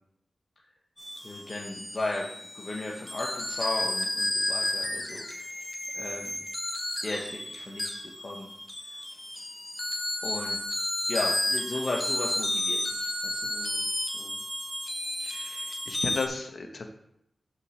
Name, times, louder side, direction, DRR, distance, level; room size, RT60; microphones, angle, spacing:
sound 1, 1.0-16.3, left 1 dB, 20° left, 1.5 m, -32 dB
voice 1, 1.2-2.2 2.5-5.7 5.9-6.4 7.0-7.9 8.2-8.5 10.2-10.6 11.1-13.5, left 2 dB, 45° left, -3 dB, 1.2 m, -35 dB
voice 2, 13.5-14.4 15.2-16.8, left 3 dB, 65° left, 4 dB, 1.2 m, -36 dB
5.7 x 5.2 x 6.3 m, 0.78 s
cardioid pair, 40°, 0 cm